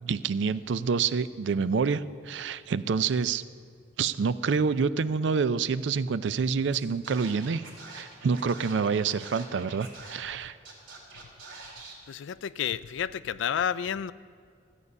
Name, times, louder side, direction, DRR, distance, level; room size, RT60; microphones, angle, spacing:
voice 1, 0.0-3.4 4.0-7.6 7.9-10.6, right 5 dB, 70° right, 15 dB, 0.4 m, -27 dB
Scratching (performance technique), 6.7-6.8 7.0-10.4 10.6-11.9, right 3 dB, 85° right, 2.7 m, -45 dB
voice 2, 12.1-14.1, left 8 dB, 75° left, 17 dB, 0.3 m, -30 dB
15.0 x 8.2 x 5.4 m, 2.2 s
head